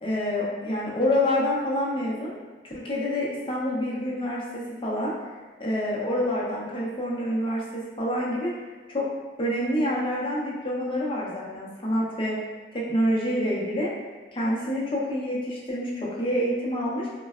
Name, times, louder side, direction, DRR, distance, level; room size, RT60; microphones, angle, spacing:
voice 1, 0.0-2.4 2.6-5.1 5.6-8.5 8.9-9.1 9.4-13.9 14.3-17.1, equal, 30° left, -5 dB, 0.6 m, -27 dB
3.7 x 2.1 x 2.4 m, 1.3 s
head